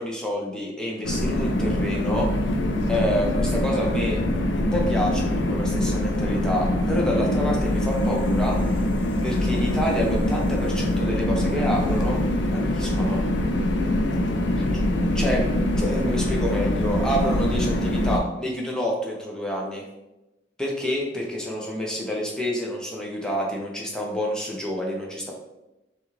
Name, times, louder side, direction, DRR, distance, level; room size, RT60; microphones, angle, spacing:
voice 1, 0.0-2.3 2.9-4.2 4.5-8.6 9.2-12.2 12.5-13.2 15.1-15.5 15.8-19.8 20.6-25.3, equal, 5° left, -2 dB, 0.7 m, -28 dB
sound 1, 1.0-18.2, left 1 dB, 75° left, 0.5 m, -24 dB
6.0 x 2.4 x 3.1 m, 0.98 s
head